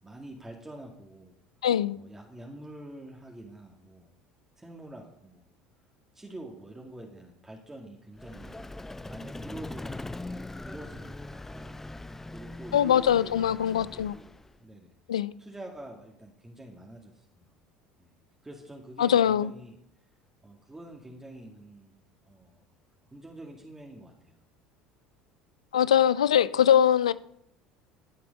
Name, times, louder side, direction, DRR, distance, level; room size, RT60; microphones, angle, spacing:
voice 1, 0.0-1.3 2.0-4.1 4.6-5.4 6.1-8.6 9.1-10.4 10.6-11.8 12.3-14.9 15.4-17.6 18.0-18.1 18.4-19.8 20.4-22.0 22.2-22.6 23.1-24.4, right 1 dB, 10° right, 2.0 m, -46 dB
voice 2, 1.6-2.0 12.7-14.2 15.1-15.3 19.0-19.5 25.7-27.1, left 9 dB, 80° left, 0.4 m, -22 dB
Vehicle, 8.2-14.6, left 2 dB, 10° left, 0.5 m, -41 dB
12.5 x 7.6 x 5.2 m
hypercardioid pair, 65°, 3 cm